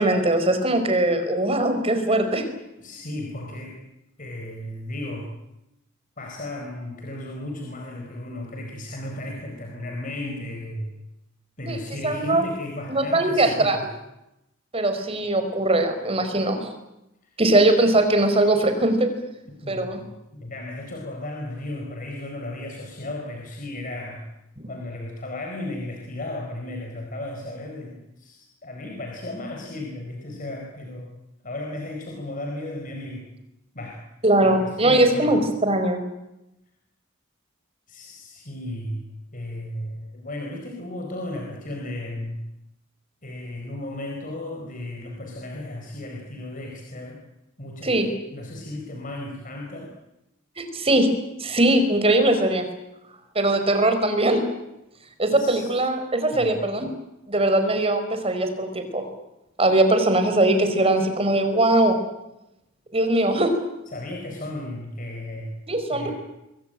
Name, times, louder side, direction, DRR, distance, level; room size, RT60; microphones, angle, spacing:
voice 1, 0.0-2.4 11.7-11.8 12.0-12.5 12.9-13.8 14.7-16.7 17.4-19.1 19.7-20.0 24.6-24.7 34.2-36.0 47.8-48.1 50.6-51.1 51.4-52.7 53.3-54.4 55.2-56.9 57.3-59.1 59.6-62.0 62.9-63.5 65.7-66.1, right 1 dB, 30° right, 7 dB, 4.8 m, -21 dB
voice 2, 2.8-3.8 4.2-5.3 6.2-10.9 11.6-13.8 19.5-20.1 20.3-24.3 24.7-31.1 31.4-33.3 33.7-34.0 34.3-35.4 37.9-42.4 43.2-47.2 47.6-49.9 55.3-55.7 56.3-56.5 63.9-65.6 65.9-66.1, left 1 dB, 40° left, 1 dB, 4.5 m, -35 dB
27.0 x 22.5 x 9.1 m, 0.90 s
head